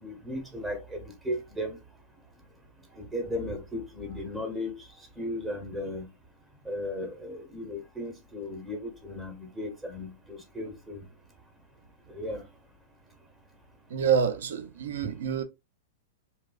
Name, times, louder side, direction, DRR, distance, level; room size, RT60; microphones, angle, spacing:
voice 1, 0.0-1.8 2.9-4.8 5.2-6.1 6.6-11.1 12.1-12.5, left 1 dB, 10° right, 0.7 m, -36 dB
voice 2, 13.9-15.4, right 7 dB, 80° right, 0.5 m, -27 dB
2.8 x 2.2 x 2.3 m
supercardioid pair, 150°, 0 cm